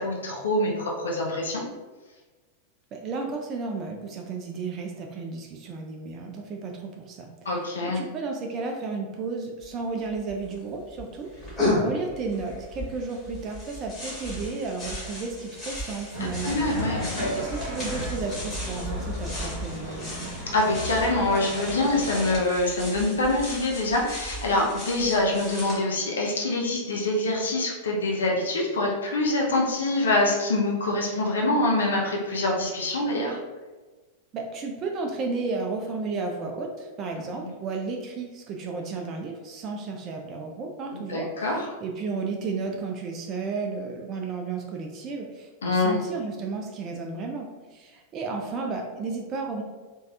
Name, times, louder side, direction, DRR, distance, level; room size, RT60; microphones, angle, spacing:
voice 1, 0.0-1.6 7.4-8.0 16.4-17.1 20.5-33.4 41.1-41.7 45.6-46.0, left 2 dB, 70° left, -1 dB, 0.5 m, -25 dB
voice 2, 2.9-16.6 17.3-20.3 34.3-49.6, right 4 dB, 30° right, 2 dB, 0.4 m, -33 dB
sound 1, 9.6-9.7 9.9-10.6 11.0-25.8, left 1 dB, 20° left, 1.4 m, -35 dB
sound 2, 16.1-22.4, left 1 dB, 85° left, 1.2 m, -34 dB
3.1 x 2.6 x 2.3 m, 1.3 s
figure-of-eight pair, 90°, 0 cm